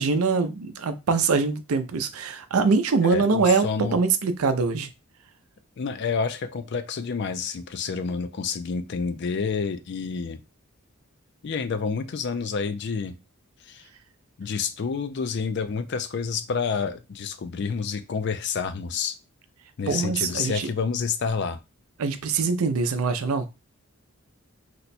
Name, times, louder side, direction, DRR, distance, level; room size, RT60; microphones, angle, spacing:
voice 1, 0.0-3.7 3.9-4.9 19.9-20.7 22.0-23.5, right 4 dB, 90° right, 0.5 m, -23 dB
voice 2, 3.0-4.0 5.8-10.4 11.4-13.1 13.7-13.8 14.4-19.2 19.8-21.6, left 5 dB, 55° left, 0.4 m, -29 dB
2.8 x 2.2 x 4.1 m
head